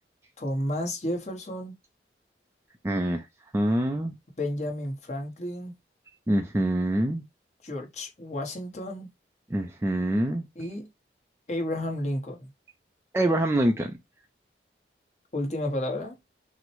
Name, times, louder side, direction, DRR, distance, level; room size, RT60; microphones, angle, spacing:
voice 1, 0.4-1.8 4.4-5.7 7.6-9.1 10.6-10.9 11.5-12.5 15.3-16.2, left 1 dB, 40° left, 1.0 m, -31 dB
voice 2, 2.8-3.3 3.5-4.2 6.3-7.2 9.5-10.5 13.1-14.0, right 1 dB, 15° right, 0.3 m, -25 dB
6.0 x 2.1 x 3.0 m
head